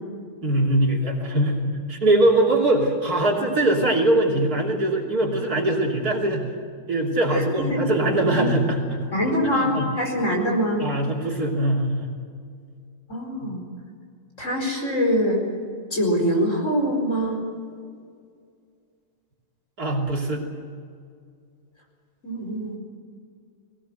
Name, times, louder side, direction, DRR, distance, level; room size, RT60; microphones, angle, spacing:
voice 1, 0.4-6.5 6.9-9.0 9.5-9.9 10.8-12.1 13.4-13.5 19.8-20.5, right 1 dB, 50° right, -1 dB, 3.6 m, -22 dB
voice 2, 7.3-7.8 8.2-8.4 9.1-10.8 13.1-13.6 14.4-15.4 15.9-17.4 22.2-22.8, equal, 40° left, 0 dB, 5.1 m, -24 dB
21.5 x 18.0 x 8.0 m, 2.2 s
omnidirectional pair, 2.0 m